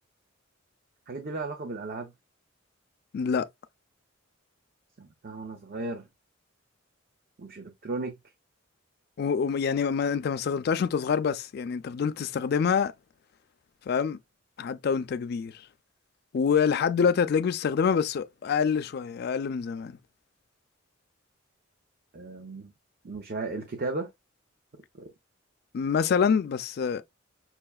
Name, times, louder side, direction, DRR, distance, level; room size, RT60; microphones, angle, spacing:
voice 1, 1.1-2.1 5.0-6.1 7.4-8.2 22.1-22.7 23.0-24.1 24.9-25.1, right 3 dB, 50° right, 0.5 m, -35 dB
voice 2, 3.1-3.5 9.2-12.9 13.9-14.2 14.6-15.6 16.3-20.0 25.7-27.0, left 6 dB, 50° left, 0.3 m, -26 dB
5.6 x 2.3 x 2.3 m
head